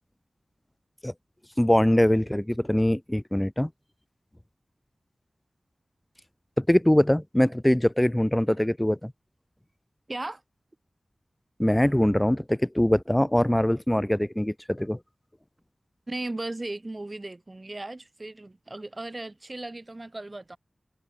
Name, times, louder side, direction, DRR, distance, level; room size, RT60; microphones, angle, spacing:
voice 1, 1.6-3.7 6.6-9.1 11.6-15.0, left 1 dB, 15° left, 0.7 m, -23 dB
voice 2, 10.1-10.4 16.1-20.6, right 2 dB, 40° right, 2.1 m, -36 dB
cardioid pair, 40°, 0 cm